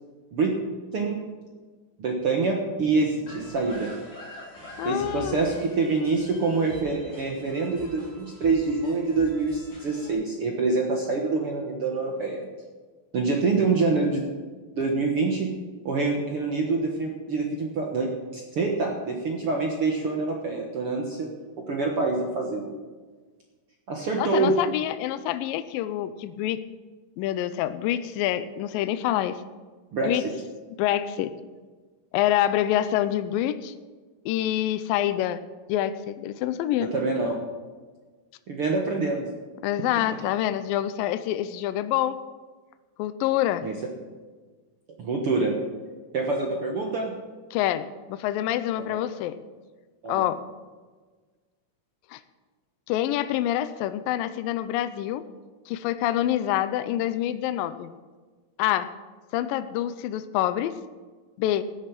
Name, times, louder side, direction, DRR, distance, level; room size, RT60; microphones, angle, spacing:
voice 1, 2.0-3.9 4.8-12.5 13.1-14.2 14.8-15.5 15.8-21.3 21.6-22.7 23.9-24.5 29.9-30.2 36.8-37.3 38.5-39.3 43.6-43.7 45.0-45.6 46.1-47.1 48.8-49.0 50.0-50.3, right 3 dB, 60° right, 0 dB, 1.5 m, -26 dB
sound 1, 3.3-10.1, equal, 40° left, 5.5 m, -44 dB
voice 2, 4.8-5.4 24.2-26.6 27.2-29.4 30.0-30.2 30.8-31.3 32.1-33.7 34.3-35.4 35.7-36.9 39.6-42.2 43.0-43.7 47.5-49.4 50.1-50.4 52.1-52.2 52.9-55.2 55.7-57.9 58.6-58.9 59.3-60.7 61.4-61.6, left 12 dB, 80° left, 12 dB, 2.2 m, -26 dB
15.0 x 10.0 x 6.0 m, 1.4 s
omnidirectional pair, 4.4 m